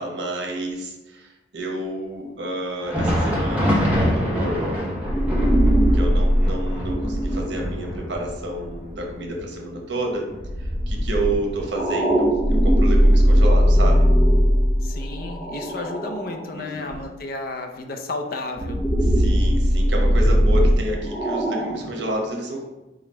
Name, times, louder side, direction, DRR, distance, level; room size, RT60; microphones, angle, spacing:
voice 1, 0.0-4.8 5.9-10.3 10.6-14.1 16.5-17.0 19.1-22.7, right 1 dB, 85° right, 1 dB, 1.0 m, -30 dB
Thunder, 2.7-12.2 12.5-12.7 13.4-13.5 14.5-14.6, equal, 10° right, 0.9 m, -27 dB
sound 1, 5.0-9.3 10.4-16.4 16.9-17.0 18.6-22.0, equal, 30° left, 0.8 m, -19 dB
voice 2, 14.8-18.8, left 3 dB, 55° left, 4 dB, 0.5 m, -32 dB
5.0 x 2.3 x 4.2 m, 1.0 s
head